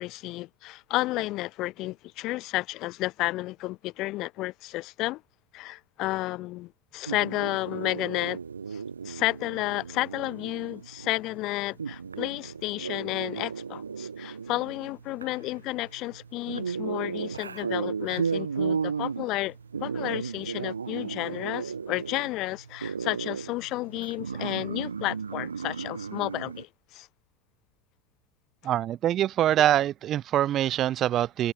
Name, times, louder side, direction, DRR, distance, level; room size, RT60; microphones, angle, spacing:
voice 1, 0.0-5.2 5.5-8.4 8.7-27.1, left 18 dB, 45° left, 4.0 m, -32 dB
sound 1, 7.1-26.6, right 6 dB, 80° right, 1.2 m, -35 dB
voice 2, 28.6-31.5, right 12 dB, 35° right, 1.5 m, -24 dB
figure-of-eight pair, 80°, 0 cm